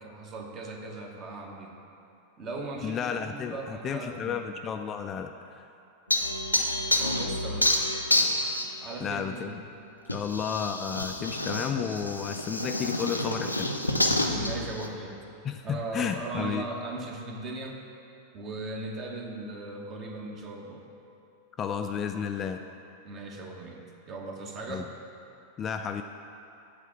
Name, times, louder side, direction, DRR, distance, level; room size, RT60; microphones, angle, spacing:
voice 1, 0.0-1.7 2.4-4.4 7.0-7.7 8.8-9.6 14.1-15.2 15.6-17.8 18.3-20.9 23.0-23.8 24.1-24.8, right 2 dB, 30° right, 1 dB, 1.0 m, -38 dB
voice 2, 2.8-5.7 9.0-9.6 10.1-13.7 15.4-16.7 21.6-22.6 24.7-24.9 25.6-26.0, left 7 dB, 25° left, 6 dB, 0.3 m, -32 dB
sound 1, 6.1-8.8 10.1-14.9, left 1 dB, 85° left, 0.5 m, -28 dB
8.1 x 4.2 x 7.1 m, 2.7 s
figure-of-eight pair, 90°, 0 cm